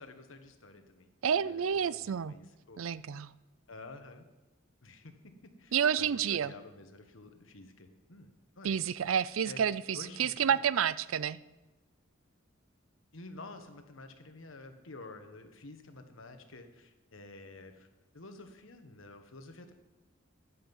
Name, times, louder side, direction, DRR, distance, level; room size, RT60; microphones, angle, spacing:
voice 1, 0.0-2.8 3.7-4.2 4.8-8.3 8.6-8.8 9.4-9.6 9.9-10.6 13.1-17.9 18.1-19.7, left 2 dB, 80° left, 7 dB, 1.4 m, -50 dB
voice 2, 1.2-2.3 2.8-3.3 5.7-6.5 8.6-11.4, right 8 dB, 90° right, 18 dB, 0.5 m, -29 dB
14.0 x 10.0 x 5.5 m, 1.1 s
head